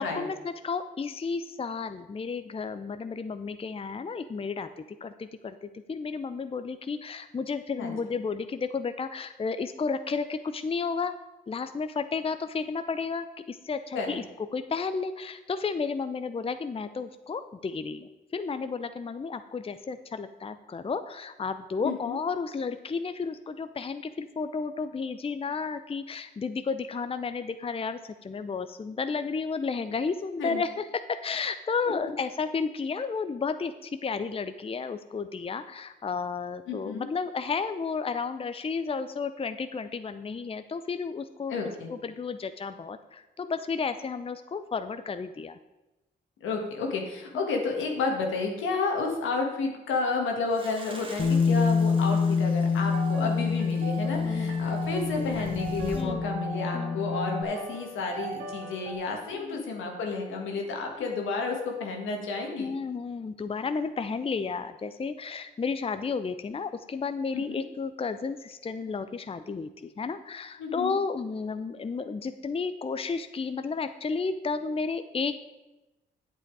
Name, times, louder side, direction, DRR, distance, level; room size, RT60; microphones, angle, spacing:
voice 1, 0.0-11.2 11.5-14.2 14.5-41.6 41.9-45.6 47.3-47.4 53.2-53.5 54.1-54.6 55.9-56.2 56.7-57.0 59.3-59.6 62.6-75.3, left 5 dB, 30° left, 10 dB, 0.6 m, -32 dB
voice 2, 21.8-22.2 30.4-30.6 36.7-37.1 41.5-41.9 46.4-62.7 67.3-67.6 70.6-71.0, left 4 dB, 85° left, 1 dB, 1.7 m, -31 dB
sound 1, 50.5-56.1, right 2 dB, 25° right, 1.8 m, -45 dB
Bass guitar, 51.2-57.4, left 5 dB, 45° left, 1.1 m, -26 dB
sound 2, 52.7-58.9, right 5 dB, 75° right, 1.4 m, -40 dB
8.3 x 7.7 x 4.7 m, 1.0 s
supercardioid pair, 50°, 20 cm